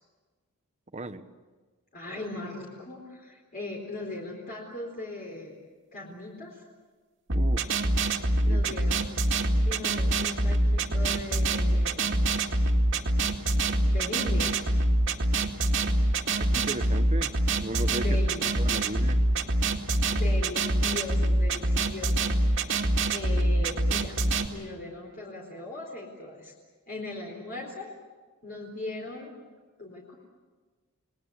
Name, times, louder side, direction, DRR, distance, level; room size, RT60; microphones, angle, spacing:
voice 1, 0.9-1.3 7.3-7.7 8.4-8.8 16.3-17.3 17.6-19.2, right 2 dB, 30° right, 10 dB, 1.0 m, -36 dB
voice 2, 1.9-5.5 5.9-6.6 8.4-9.1 9.6-12.2 13.8-14.6 17.9-18.5 20.1-24.2 24.5-26.5 26.9-27.9 28.4-29.3 29.8-30.2, left 2 dB, 45° left, -1 dB, 4.2 m, -39 dB
sound 1, 7.3-24.5, right 1 dB, 60° right, 2.1 m, -25 dB
30.0 x 20.5 x 8.2 m, 1.4 s
head